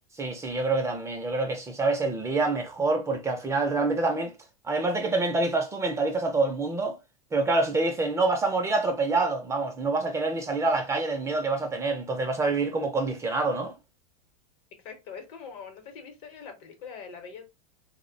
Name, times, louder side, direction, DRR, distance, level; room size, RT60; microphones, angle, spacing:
voice 1, 0.2-4.3 4.6-7.0 7.3-13.7, right 3 dB, 15° right, 0.4 m, -26 dB
voice 2, 14.8-17.4, left 6 dB, 60° left, 0.9 m, -43 dB
2.4 x 2.1 x 2.5 m
supercardioid pair, 120°, 18 cm